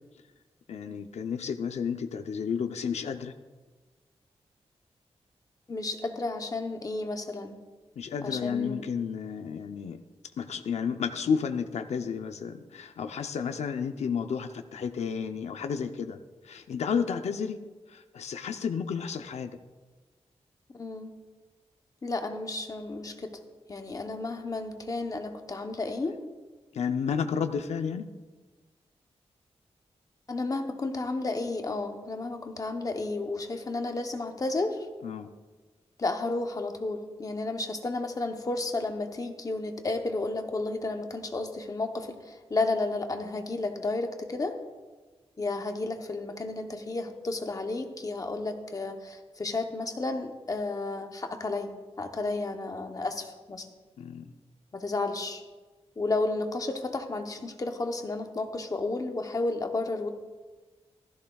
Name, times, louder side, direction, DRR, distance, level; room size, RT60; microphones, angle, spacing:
voice 1, 0.7-3.3 8.0-10.0 10.4-16.2 16.4-17.6 17.9-19.5 26.7-28.1 35.0-35.3 54.0-54.2, left 6 dB, 80° left, 7 dB, 0.6 m, -31 dB
voice 2, 5.7-7.6 8.2-8.9 20.7-21.1 22.0-23.3 23.7-26.2 30.3-34.9 36.0-44.6 45.4-53.7 54.7-55.4 56.0-60.1, left 2 dB, 30° left, 5 dB, 0.8 m, -32 dB
15.5 x 13.5 x 2.3 m, 1.3 s
wide cardioid pair, 160°, 11 cm